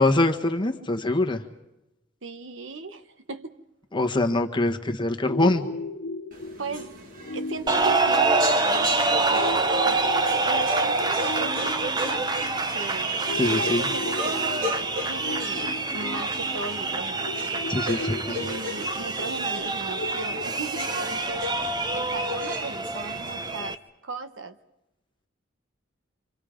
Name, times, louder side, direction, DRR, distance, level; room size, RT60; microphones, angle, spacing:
voice 1, 0.0-1.4 3.9-5.7 13.4-13.9 17.7-18.4, left 2 dB, 25° left, 4 dB, 1.4 m, -24 dB
voice 2, 2.2-3.6 6.6-7.0 7.3-10.0 10.4-17.3 18.2-21.4 21.9-23.8 24.0-24.6, right 3 dB, 80° right, 10 dB, 1.2 m, -37 dB
sound 1, 5.2-21.2, left 3 dB, 85° left, 1.3 m, -37 dB
sound 2, 6.3-23.5, equal, 45° right, 2.3 m, -39 dB
sound 3, 7.7-23.7, right 3 dB, 20° right, 0.9 m, -26 dB
27.0 x 26.0 x 5.1 m, 0.93 s
head